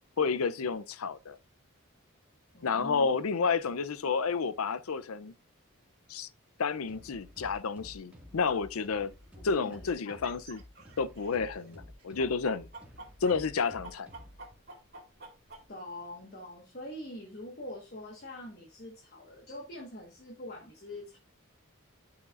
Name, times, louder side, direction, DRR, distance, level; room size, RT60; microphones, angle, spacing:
voice 1, 0.2-1.4 2.6-5.3 6.1-6.3 6.6-9.1 9.4-10.6 11.0-12.7 13.2-14.1, left 5 dB, 85° left, 0.6 m, -30 dB
voice 2, 2.5-3.1 9.5-10.2 15.7-21.2, left 1 dB, 45° left, 1.5 m, -44 dB
sound 1, 6.8-14.5, left 1 dB, 5° right, 1.9 m, -52 dB
sound 2, 9.2-9.3 9.6-11.7 12.0-15.7, right 3 dB, 50° right, 2.8 m, -49 dB
12.0 x 5.8 x 2.5 m
head